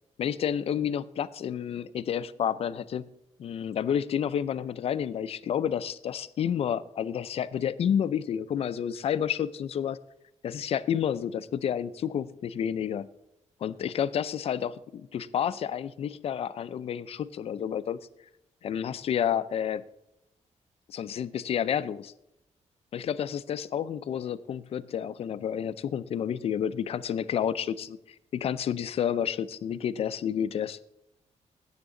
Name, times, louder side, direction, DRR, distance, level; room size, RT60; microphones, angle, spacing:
voice 1, 0.2-3.1 3.4-10.0 10.4-13.0 13.6-18.0 18.6-19.8 20.9-22.1 22.9-28.0 28.3-30.8, left 9 dB, 55° left, 14 dB, 0.5 m, -30 dB
16.5 x 7.3 x 3.8 m, 0.84 s
wide cardioid pair, 175°, 12 cm